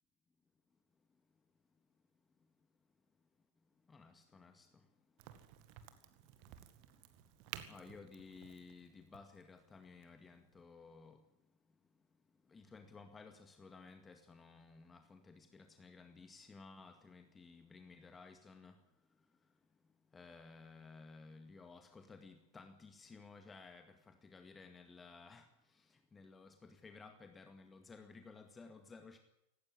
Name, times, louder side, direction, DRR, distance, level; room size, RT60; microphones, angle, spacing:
voice 1, 3.9-4.8 7.7-11.2 12.5-18.8 20.1-29.2, left 4 dB, 15° left, 2.0 m, -56 dB
Crack, 5.2-10.6, right 12 dB, 45° right, 2.0 m, -55 dB
18.0 x 17.5 x 10.0 m
figure-of-eight pair, 90°, 0 cm